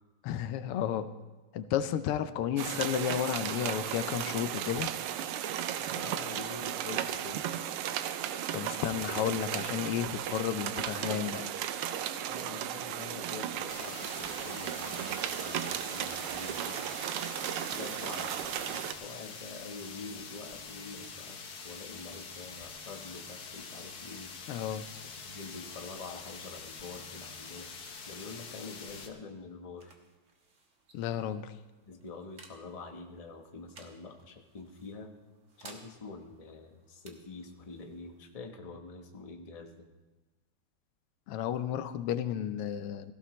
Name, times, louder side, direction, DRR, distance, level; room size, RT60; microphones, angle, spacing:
voice 1, 0.2-1.1 1.5-4.9 8.5-11.5 24.5-24.8 30.9-31.5 41.3-43.1, left 10 dB, 90° left, 12 dB, 1.7 m, -32 dB
sound 1, 2.6-18.9, right 10 dB, 85° right, 1.6 m, -35 dB
voice 2, 5.8-7.5 8.8-9.4 12.2-16.8 17.7-24.3 25.2-27.7 28.1-29.9 31.9-35.1 35.6-39.9, left 3 dB, 25° left, 3 dB, 0.8 m, -46 dB
sound 2, 13.7-29.1, left 5 dB, 50° left, 1.5 m, -45 dB
sound 3, 29.2-40.4, right 3 dB, 40° right, 1.5 m, -59 dB
17.5 x 15.0 x 3.2 m, 1.2 s
omnidirectional pair, 2.4 m